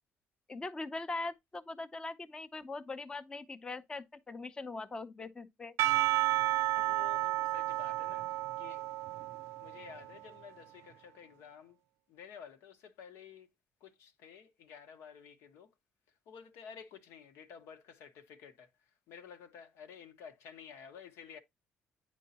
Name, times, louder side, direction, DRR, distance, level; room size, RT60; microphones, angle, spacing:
voice 1, 0.5-5.8, left 3 dB, 20° left, 0.6 m, -41 dB
Percussion / Church bell, 5.8-10.2, right 16 dB, 80° right, 0.3 m, -32 dB
voice 2, 6.5-8.9 9.6-11.8 12.1-13.5 13.8-15.7 16.3-21.4, left 7 dB, 85° left, 1.0 m, -52 dB
9.1 x 4.5 x 2.8 m
cardioid pair, 135°, 5 cm